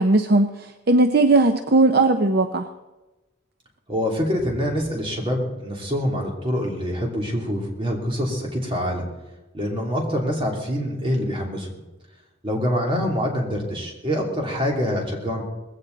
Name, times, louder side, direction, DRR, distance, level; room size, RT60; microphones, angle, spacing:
voice 1, 0.0-2.7, right 2 dB, 45° right, 8 dB, 0.7 m, -18 dB
voice 2, 3.9-9.0 9.5-11.7 12.4-15.4, equal, 25° right, 0 dB, 3.1 m, -25 dB
19.5 x 16.0 x 4.0 m, 1.1 s
head